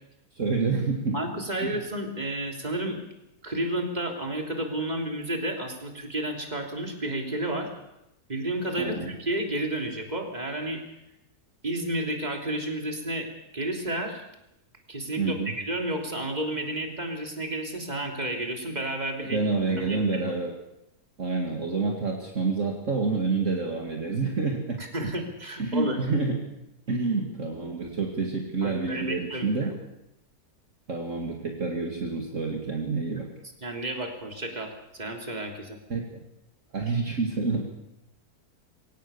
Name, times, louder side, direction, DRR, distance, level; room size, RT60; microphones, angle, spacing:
voice 1, 0.3-1.2 1.6-1.7 8.8-9.1 15.2-15.5 19.3-20.5 21.2-24.8 25.6-26.4 26.9-29.7 30.9-33.3 35.9-36.2 36.7-37.7, right 4 dB, 50° right, 0 dB, 2.6 m, -28 dB
voice 2, 1.1-3.0 3.4-7.7 8.3-10.8 11.6-13.3 13.5-14.2 14.9-19.4 19.8-20.3 24.8-26.0 28.6-29.7 33.6-35.8, right 1 dB, 25° right, 2 dB, 3.4 m, -31 dB
23.5 x 18.0 x 7.1 m, 0.86 s
omnidirectional pair, 1.7 m